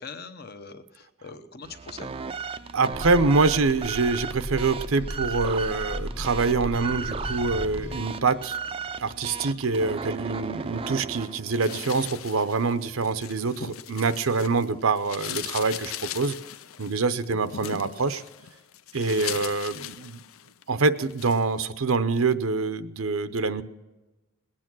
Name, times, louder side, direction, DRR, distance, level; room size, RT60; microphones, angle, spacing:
voice 1, 0.0-2.2, left 4 dB, 50° left, 9 dB, 0.9 m, -42 dB
sound 1, 1.6-12.2, right 5 dB, 25° right, 0.4 m, -36 dB
voice 2, 2.7-8.6 9.0-16.3 16.8-18.2 18.9-20.2 20.7-23.6, right 4 dB, 85° right, 12 dB, 0.7 m, -25 dB
sound 2, 2.9-8.0, equal, 15° left, 0.9 m, -36 dB
sound 3, 11.5-14.7 14.9-20.6 21.0-21.4, left 10 dB, 80° left, 0.5 m, -39 dB
20.0 x 8.9 x 6.1 m, 1.1 s
head